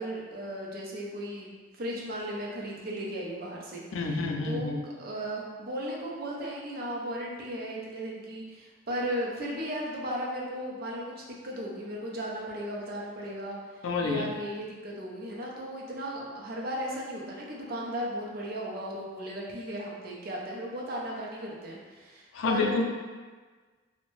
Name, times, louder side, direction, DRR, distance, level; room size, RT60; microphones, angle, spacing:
voice 1, 0.0-3.8 4.4-4.7 5.0-11.1 11.4-13.6 14.0-22.8, equal, 50° right, -3 dB, 0.5 m, -36 dB
voice 2, 3.9-4.8 13.8-14.3 22.3-22.8, left 3 dB, 85° left, 2 dB, 0.4 m, -28 dB
2.7 x 2.1 x 3.0 m, 1.4 s
head